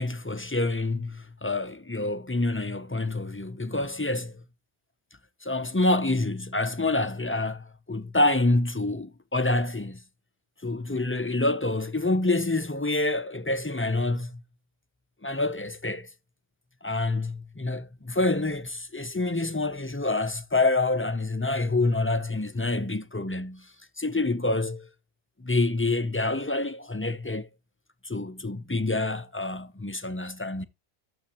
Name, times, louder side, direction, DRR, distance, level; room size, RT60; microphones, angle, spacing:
voice 1, 0.0-4.4 5.4-10.0 10.6-14.4 15.2-16.1 16.8-23.7 24.0-24.9 25.4-27.5 28.0-30.7, left 2 dB, 15° left, 0.5 m, -27 dB
11.5 x 7.7 x 2.9 m
omnidirectional pair, 1.1 m